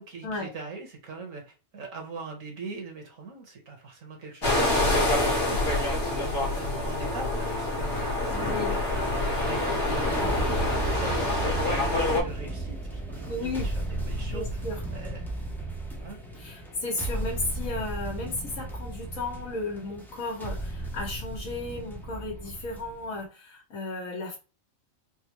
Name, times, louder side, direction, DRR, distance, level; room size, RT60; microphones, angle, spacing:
voice 1, 0.0-8.9 9.4-14.6 14.9-15.3 16.0-16.2, right 4 dB, 80° right, 1 dB, 1.6 m, -42 dB
sound 1, 4.4-12.2, left 2 dB, 50° left, 1.4 m, -26 dB
voice 2, 8.3-8.8 13.3-13.7 14.3-14.8 16.4-24.4, left 2 dB, 85° left, -2 dB, 1.5 m, -34 dB
sound 2, 8.9-23.2, right 2 dB, 5° left, 0.3 m, -35 dB
4.3 x 2.2 x 2.9 m, 0.31 s
omnidirectional pair, 1.4 m